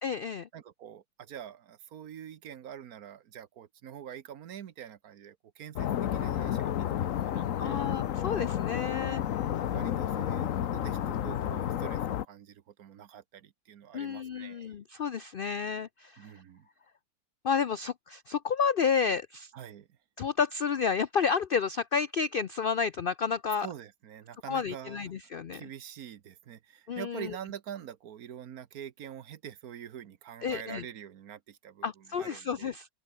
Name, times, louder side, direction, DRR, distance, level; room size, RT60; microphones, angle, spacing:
voice 1, 0.0-0.5 7.6-9.2 13.9-16.3 17.4-19.5 20.2-23.7 24.5-25.6 26.9-27.3 30.4-30.8 31.8-32.9, left 6 dB, 85° left, 0.4 m, -31 dB
voice 2, 0.5-7.8 9.3-14.7 16.2-16.7 19.5-20.0 23.6-25.1 25.5-32.7, right 9 dB, 65° right, 1.4 m, -45 dB
sound 1, 5.8-12.3, left 10 dB, 60° left, 1.1 m, -31 dB
open air
omnidirectional pair, 1.8 m